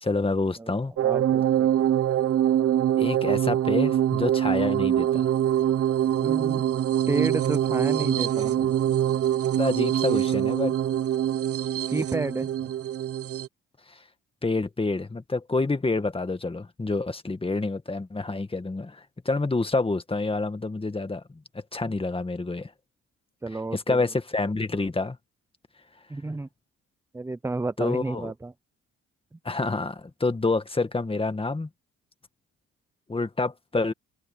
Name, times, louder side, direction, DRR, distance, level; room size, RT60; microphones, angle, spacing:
voice 1, 0.0-0.9 3.0-5.3 9.5-10.7 13.9-14.0 14.4-22.7 23.7-25.2 27.8-28.3 29.4-31.7 33.1-33.9, left 3 dB, 20° left, 1.9 m, -28 dB
voice 2, 0.6-1.7 6.2-6.6 7.1-8.7 11.9-12.5 23.4-24.0 26.1-26.5 27.1-28.5 29.3-29.4, right 3 dB, 10° right, 0.5 m, -31 dB
sound 1, 1.0-13.5, right 11 dB, 50° right, 0.7 m, -24 dB
cardioid pair, 90°, 30 cm